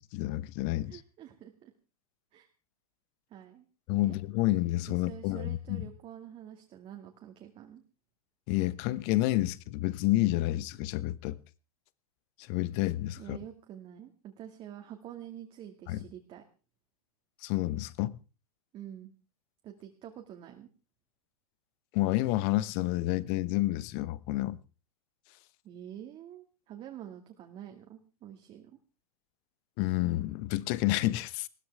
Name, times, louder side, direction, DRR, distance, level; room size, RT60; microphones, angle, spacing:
voice 1, 0.0-1.0 3.9-5.9 8.5-11.4 12.4-13.4 15.9-16.0 17.4-18.2 21.9-24.6 29.8-31.5, left 17 dB, 40° left, 1.0 m, -29 dB
voice 2, 0.9-1.7 2.3-2.5 3.3-3.7 3.9-4.2 4.9-7.8 13.2-16.4 18.7-19.1 19.6-20.7 25.6-28.7, right 10 dB, 30° right, 2.2 m, -47 dB
20.0 x 16.0 x 3.5 m
hypercardioid pair, 105°, 19 cm